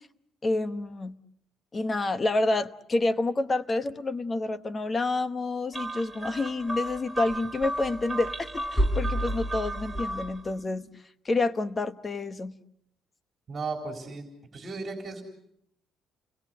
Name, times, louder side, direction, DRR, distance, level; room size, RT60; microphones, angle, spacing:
voice 1, 0.4-1.1 1.7-10.9 11.2-12.5, left 2 dB, 25° left, 11 dB, 1.0 m, -28 dB
sound 1, 5.7-10.5, right 1 dB, 5° right, 2.0 m, -31 dB
voice 2, 13.5-14.3 14.5-15.2, right 4 dB, 30° right, 3 dB, 4.0 m, -35 dB
29.5 x 21.0 x 7.8 m, 0.74 s
cardioid pair, 145°, 0 cm